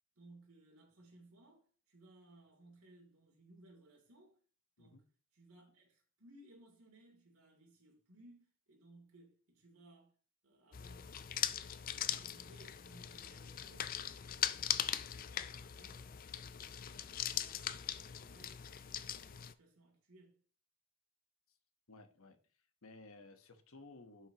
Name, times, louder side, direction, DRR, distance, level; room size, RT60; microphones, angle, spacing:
voice 1, 0.2-4.4 4.8-5.0 5.3-10.1 10.4-11.1 11.4-16.5 16.9-20.4, right 1 dB, 80° right, 3.0 m, -63 dB
sound 1, 10.7-19.5, left 10 dB, 40° left, 0.4 m, -40 dB
voice 2, 21.9-22.4 22.8-24.3, left 2 dB, 75° left, 1.2 m, -56 dB
11.0 x 6.0 x 3.0 m
head